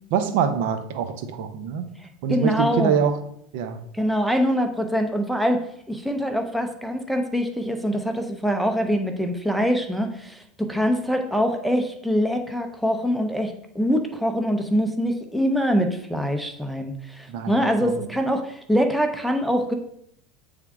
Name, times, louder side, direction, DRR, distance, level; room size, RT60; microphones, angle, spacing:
voice 1, 0.1-1.8 2.2-3.2 3.5-3.8 17.3-17.5 17.8-17.9, right 7 dB, 65° right, 8 dB, 0.7 m, -24 dB
voice 2, 2.0-3.0 3.9-19.7, equal, ahead, 4 dB, 0.6 m, -24 dB
8.2 x 3.6 x 3.5 m, 0.72 s
supercardioid pair, 130°, 0 cm